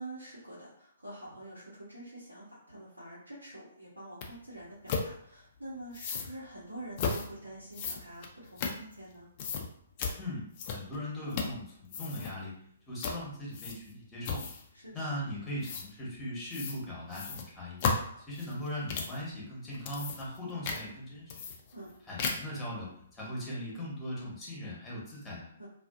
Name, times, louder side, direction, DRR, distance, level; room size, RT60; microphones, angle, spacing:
voice 1, 0.0-9.3 14.7-14.9 21.7-21.9 25.6-25.7, right 1 dB, 85° right, -9 dB, 0.9 m, -46 dB
sound 1, 4.2-4.3 4.9-5.1 5.9-6.3 7.0-7.3 7.7-9.1 9.4-9.7 10.0-10.2 10.6-11.0 11.3-11.6 11.9-12.3 13.0-13.2 13.5-13.9 14.2-14.7 15.6-15.9 16.5-16.8 17.1-19.2 19.7-20.4 20.6-20.8 21.3-21.9 22.2-22.6, left 5 dB, 35° left, 0.5 m, -34 dB
voice 2, 10.7-12.5 12.9-14.4 14.9-17.8 18.2-21.4 22.1-25.5, left 1 dB, 10° left, -5 dB, 1.0 m, -39 dB
2.5 x 2.4 x 2.4 m, 0.66 s
figure-of-eight pair, 125°, 0 cm